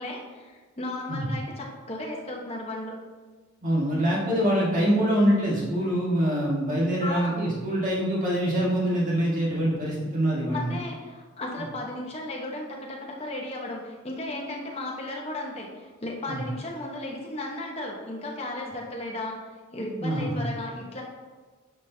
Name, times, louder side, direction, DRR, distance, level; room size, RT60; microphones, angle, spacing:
voice 1, 0.0-2.9 7.0-7.4 10.5-19.4 19.7-21.0, left 1 dB, 30° left, -1 dB, 1.1 m, -35 dB
voice 2, 3.6-10.7 16.3-16.4 20.0-20.4, equal, 40° right, -5 dB, 1.9 m, -24 dB
9.9 x 5.1 x 2.8 m, 1.4 s
head